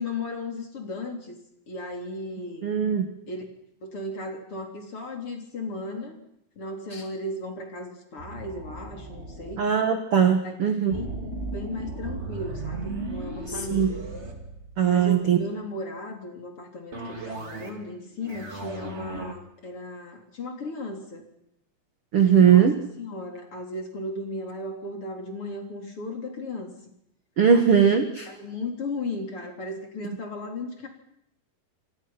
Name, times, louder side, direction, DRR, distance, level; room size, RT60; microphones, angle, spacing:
voice 1, 0.0-1.4 1.7-2.7 3.3-3.4 3.8-6.2 6.6-9.7 10.4-10.6 10.9-14.0 14.9-21.3 22.2-22.7 23.0-26.7 27.5-27.6 28.3-30.9, left 2 dB, 35° left, 2 dB, 4.1 m, -36 dB
voice 2, 2.6-3.1 6.9-7.0 9.6-10.9 13.5-13.9 14.8-15.4 22.1-22.7 27.4-28.3, right 7 dB, 55° right, 6 dB, 1.6 m, -20 dB
sound 1, 8.2-9.6 10.9-15.1 16.9-17.9 18.2-19.3, right 3 dB, 20° right, 1.9 m, -36 dB
27.0 x 27.0 x 5.9 m, 0.77 s
omnidirectional pair, 4.9 m